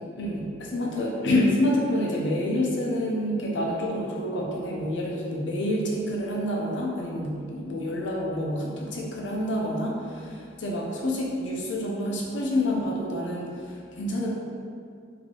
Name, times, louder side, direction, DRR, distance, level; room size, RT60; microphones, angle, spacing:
voice 1, 0.2-14.3, left 1 dB, 80° left, -2 dB, 0.7 m, -28 dB
3.8 x 2.8 x 3.3 m, 2.3 s
head